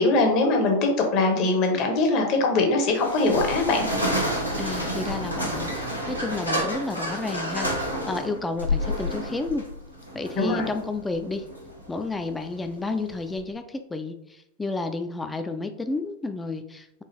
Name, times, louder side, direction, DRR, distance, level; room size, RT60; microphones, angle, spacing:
voice 1, 0.0-3.9 10.4-10.7, left 3 dB, 40° left, 3 dB, 0.9 m, -22 dB
sound 1, 2.9-13.4, equal, 90° left, 0.9 m, -30 dB
voice 2, 4.5-9.7 10.1-11.5 11.9-17.0, left 3 dB, 10° left, 7 dB, 0.3 m, -31 dB
4.7 x 2.5 x 2.9 m, 0.79 s
figure-of-eight pair, 90°, 0 cm